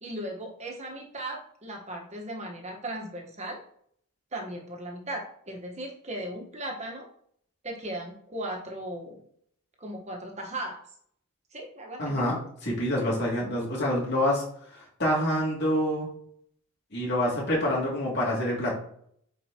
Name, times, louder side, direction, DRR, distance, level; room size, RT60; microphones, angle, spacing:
voice 1, 0.0-3.6 4.3-7.1 7.6-9.2 9.8-10.8 11.5-12.3, right 1 dB, 30° right, 1 dB, 1.3 m, -37 dB
voice 2, 12.0-14.4 15.0-16.1 16.9-18.7, left 1 dB, 50° left, -4 dB, 2.6 m, -26 dB
9.0 x 4.5 x 3.0 m, 0.66 s
head